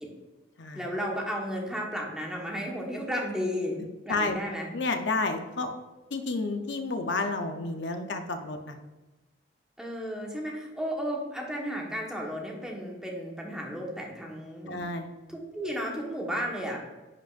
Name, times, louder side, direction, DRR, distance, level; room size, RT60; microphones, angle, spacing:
voice 1, 0.7-3.7 4.0-4.7 9.8-14.8 15.3-16.8, equal, 5° right, -1 dB, 1.1 m, -33 dB
voice 2, 4.7-5.7 6.1-8.8 14.7-15.1, left 3 dB, 65° left, 6 dB, 0.6 m, -30 dB
10.5 x 5.2 x 2.5 m, 1.1 s
head